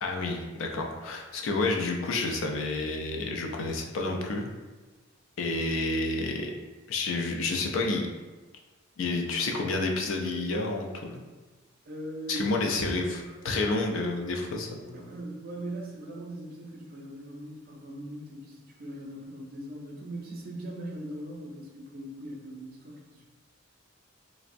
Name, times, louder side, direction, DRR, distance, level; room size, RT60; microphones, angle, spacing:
voice 1, 0.0-4.4 5.4-6.5 6.9-8.0 9.0-11.2 12.3-15.1, left 2 dB, 70° left, 2 dB, 0.4 m, -30 dB
voice 2, 11.8-13.4 14.9-23.2, right 1 dB, 45° right, -1 dB, 0.4 m, -40 dB
3.3 x 2.0 x 2.5 m, 1.2 s
head